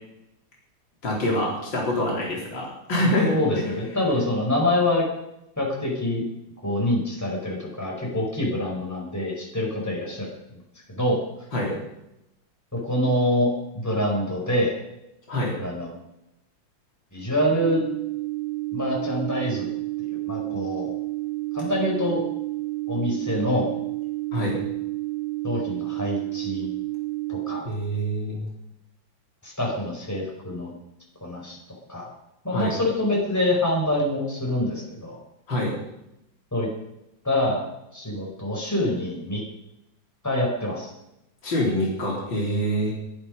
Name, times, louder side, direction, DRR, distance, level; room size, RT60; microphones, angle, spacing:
voice 1, 1.0-3.4 11.5-11.8 15.3-15.5 24.3-24.5 27.6-28.5 32.5-32.7 35.5-35.7 41.4-42.9, equal, 70° left, -3 dB, 4.8 m, -25 dB
voice 2, 3.2-5.0 5.6-6.2 6.6-10.6 10.9-11.2 12.7-14.7 15.6-15.9 17.1-17.8 18.7-19.7 20.0-20.9 21.5-22.2 22.9-23.7 25.4-26.7 27.3-27.6 29.4-30.7 31.2-31.6 31.9-32.1 32.4-35.2 36.5-36.7 37.2-37.7 37.9-39.4 40.2-40.9, left 1 dB, 10° left, -3 dB, 5.4 m, -25 dB
sound 1, 17.6-27.6, right 20 dB, 50° right, 1.0 m, -30 dB
22.5 x 10.5 x 5.4 m, 0.85 s
omnidirectional pair, 2.1 m